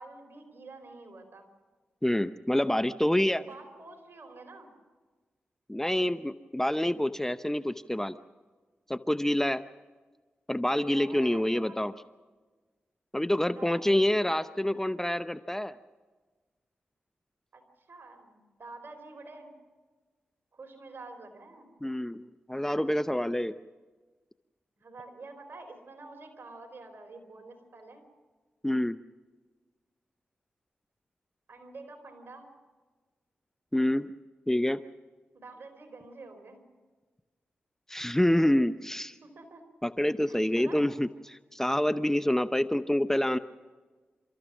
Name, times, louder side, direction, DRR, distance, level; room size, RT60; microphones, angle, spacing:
voice 1, 0.0-1.5 3.4-4.7 10.8-11.8 13.5-13.9 17.5-17.6 17.9-19.5 20.5-21.7 24.8-28.0 31.5-32.5 35.3-36.7 39.2-39.6 40.3-40.9, right 3 dB, 60° right, 5 dB, 4.4 m, -48 dB
voice 2, 2.0-3.4 5.7-8.1 8.9-9.6 10.5-11.9 13.1-15.7 21.8-23.6 28.6-29.0 33.7-34.1 34.5-34.8 37.9-39.1 39.8-43.4, left 1 dB, 10° left, 13 dB, 0.7 m, -27 dB
29.5 x 14.0 x 6.2 m, 1.3 s
cardioid pair, 40°, 4 cm